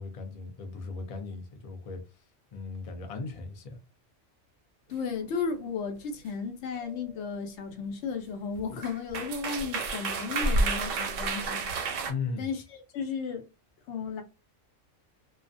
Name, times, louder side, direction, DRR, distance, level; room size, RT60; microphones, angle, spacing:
voice 1, 0.0-2.2 2.5-3.8 12.1-12.5, left 4 dB, 50° left, 0.4 m, -37 dB
voice 2, 4.9-11.9 12.4-13.4 13.9-14.2, left 5 dB, 70° left, 0.9 m, -34 dB
sound 1, 6.8-7.0 8.6-8.7 8.8-12.1, right 3 dB, 90° right, 0.9 m, -30 dB
2.3 x 2.1 x 2.5 m
omnidirectional pair, 1.3 m